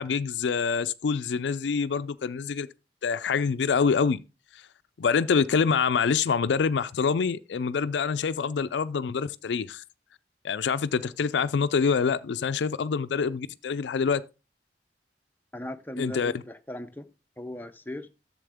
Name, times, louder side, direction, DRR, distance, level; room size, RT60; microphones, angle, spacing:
voice 1, 0.0-2.7 3.0-4.2 4.5-4.6 5.0-9.8 10.4-14.2 16.0-16.3, left 5 dB, 85° left, 0.4 m, -26 dB
voice 2, 15.5-17.1 17.4-18.1, left 1 dB, 10° left, 0.6 m, -38 dB
11.0 x 7.4 x 3.5 m
head